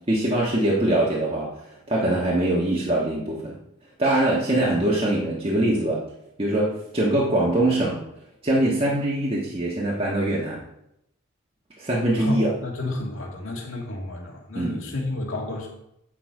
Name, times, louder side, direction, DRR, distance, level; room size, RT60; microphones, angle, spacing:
voice 1, 0.1-1.5 1.9-3.6 4.0-6.0 6.4-8.0 8.4-10.6 11.8-12.5 14.5-14.8, right 1 dB, 25° right, -5 dB, 1.4 m, -23 dB
voice 2, 12.2-15.7, left 2 dB, 75° left, -1 dB, 2.2 m, -31 dB
8.6 x 6.0 x 4.8 m, 0.81 s
head